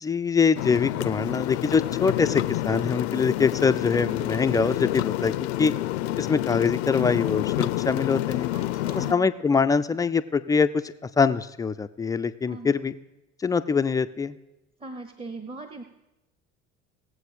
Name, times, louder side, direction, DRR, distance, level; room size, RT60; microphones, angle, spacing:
voice 1, 0.0-5.7 6.2-8.5 8.9-12.9 13.4-14.3, left 5 dB, 10° left, 11 dB, 0.3 m, -24 dB
sound 1, 0.6-9.1, left 16 dB, 60° left, 0.5 m, -28 dB
voice 2, 8.5-9.3 12.5-12.7 14.8-15.8, right 3 dB, 15° right, 7 dB, 0.8 m, -39 dB
18.0 x 7.9 x 5.0 m, 0.98 s
figure-of-eight pair, 60°, 37 cm